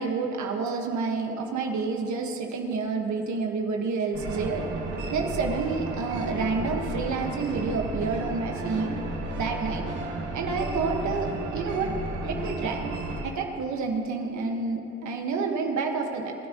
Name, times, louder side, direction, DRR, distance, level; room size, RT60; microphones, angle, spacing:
voice 1, 0.0-4.6 5.1-8.9 9.4-9.8 10.3-11.9 12.2-12.9 13.2-16.3, right 4 dB, 70° right, 2 dB, 1.5 m, -29 dB
sound 1, 4.1-13.2, right 2 dB, 90° right, 2.3 m, -33 dB
27.0 x 9.6 x 3.0 m, 2.8 s
cardioid pair, 90°, 30 cm